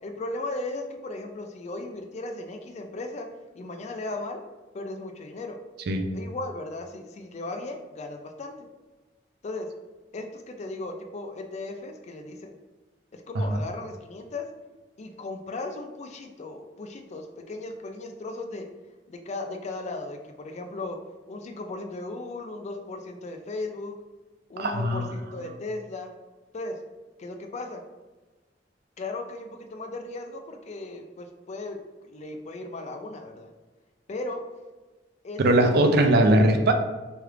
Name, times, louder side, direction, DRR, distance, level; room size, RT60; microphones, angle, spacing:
voice 1, 0.0-3.3 3.5-4.4 4.7-5.6 6.1-8.6 9.4-9.7 10.1-12.5 13.3-14.5 15.0-18.7 19.1-21.0 21.3-24.0 24.5-26.1 26.5-26.7 27.2-27.8 29.0-33.5 34.1-34.4 35.2-35.4 35.8-36.1 36.4-36.7, left 2 dB, 40° left, 4 dB, 0.3 m, -36 dB
voice 2, 24.6-25.1 35.4-36.7, right 1 dB, 60° right, 5 dB, 0.4 m, -20 dB
3.1 x 2.4 x 3.2 m, 1.2 s
head